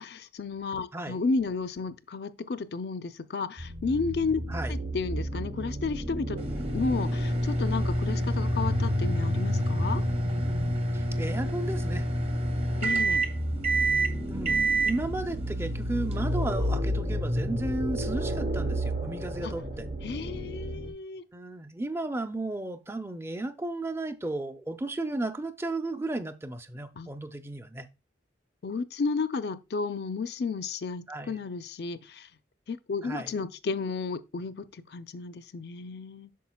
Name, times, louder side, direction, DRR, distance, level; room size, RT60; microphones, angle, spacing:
voice 1, 0.0-4.4 4.7-6.4 6.7-10.0 12.8-13.3 19.4-19.5 20.0-21.2 27.0-27.1 28.6-32.3 32.7-36.3, left 4 dB, 60° left, 0.5 m, -32 dB
sound 1, 3.6-20.9, equal, 65° right, 1.2 m, -32 dB
sound 2, 6.4-16.7, right 1 dB, 35° right, 0.8 m, -29 dB
voice 2, 10.9-12.1 14.3-19.9 21.3-27.9 31.1-31.4 33.0-33.3, right 2 dB, 15° right, 0.4 m, -34 dB
8.4 x 6.2 x 2.2 m
head